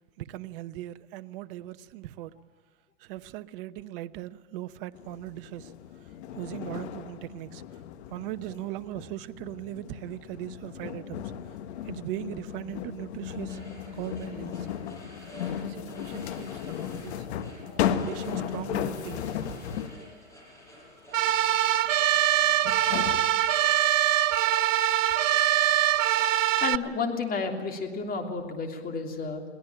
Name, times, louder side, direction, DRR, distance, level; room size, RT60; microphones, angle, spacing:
voice 1, 0.2-2.3 3.0-5.7 6.3-7.6 8.1-11.3 11.9-13.6 13.9-14.7 15.6-17.3 17.9-19.3, right 15 dB, 45° right, 1.0 m, -39 dB
sound 1, 4.9-20.1 21.8-21.9 22.6-23.2, left 9 dB, 60° left, 1.8 m, -35 dB
sound 2, 13.3-21.4, equal, 10° left, 7.6 m, -50 dB
sound 3, 21.1-26.8, right 12 dB, 85° right, 0.8 m, -23 dB
voice 2, 26.4-29.4, left 4 dB, 25° left, 3.2 m, -32 dB
22.5 x 18.0 x 9.0 m
hypercardioid pair, 130°, 37 cm